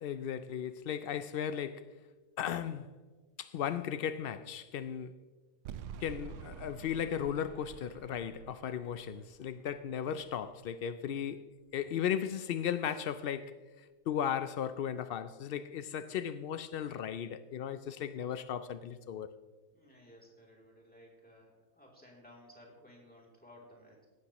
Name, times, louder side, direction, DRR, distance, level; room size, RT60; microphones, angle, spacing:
voice 1, 0.0-1.9 2.4-2.9 3.4-5.1 6.0-11.4 11.7-19.3, left 9 dB, 90° left, 0.5 m, -36 dB
sound 1, 5.7-10.8, right 8 dB, 70° right, 0.8 m, -49 dB
voice 2, 19.7-24.0, left 1 dB, 5° left, 2.9 m, -57 dB
17.0 x 12.0 x 3.0 m
omnidirectional pair, 1.5 m